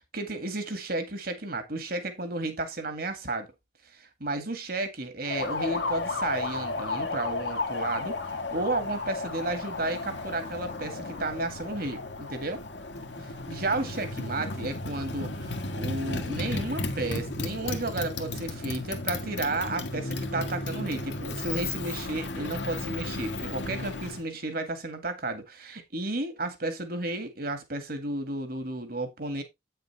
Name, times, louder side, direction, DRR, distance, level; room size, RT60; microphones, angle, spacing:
voice 1, 0.1-3.5 3.9-12.6 13.5-29.4, right 2 dB, 50° right, 2.0 m, -33 dB
Motorcycle, 5.2-24.2, left 2 dB, 70° left, 1.6 m, -34 dB
9.0 x 6.6 x 3.3 m
head